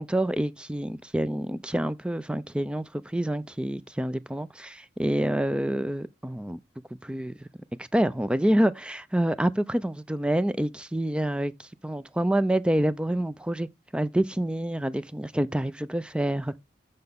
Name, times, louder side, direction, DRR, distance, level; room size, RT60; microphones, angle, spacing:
voice 1, 0.0-6.6 7.0-7.5 7.8-16.6, right 1 dB, 5° right, 0.3 m, -27 dB
6.6 x 6.1 x 3.5 m
head